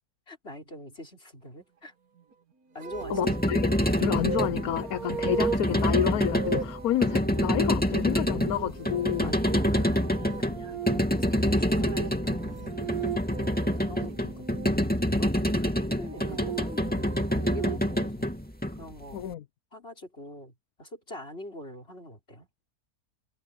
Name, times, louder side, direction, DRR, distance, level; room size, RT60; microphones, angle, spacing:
voice 1, 0.3-1.9 2.7-3.2 8.7-10.8 11.1-12.8 13.4-13.5 13.8-18.3 18.7-19.2 19.7-20.5 20.8-22.5, left 1 dB, 40° left, 6.1 m, -45 dB
sound 1, 2.8-14.7 15.9-18.1, right 7 dB, 65° right, 1.8 m, -37 dB
sound 2, 3.0-19.2, equal, 5° left, 2.6 m, -27 dB
voice 2, 3.1-9.3 19.1-19.4, left 10 dB, 70° left, 1.2 m, -29 dB
omnidirectional pair, 1.7 m